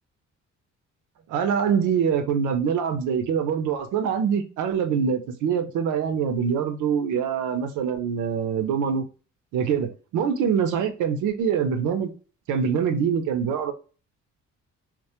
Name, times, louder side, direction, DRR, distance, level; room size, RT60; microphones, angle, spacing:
voice 1, 1.3-9.1 9.5-12.1 12.5-13.7, right 7 dB, 80° right, 0.5 m, -24 dB
2.1 x 2.1 x 2.8 m
cardioid pair, 90°, 30 cm